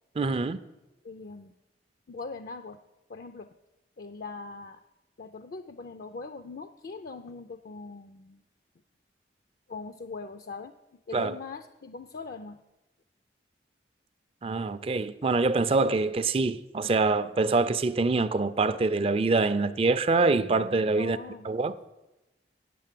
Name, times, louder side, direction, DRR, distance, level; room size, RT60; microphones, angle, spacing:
voice 1, 0.2-0.6 11.1-11.3 14.4-21.2 21.4-21.7, right 3 dB, 35° right, 0.4 m, -25 dB
voice 2, 1.0-1.5 2.1-2.8 3.1-3.5 4.0-4.8 5.2-8.4 9.7-10.8 11.1-12.6 21.0-21.5, left 4 dB, 55° left, 0.4 m, -41 dB
8.8 x 7.6 x 7.5 m
head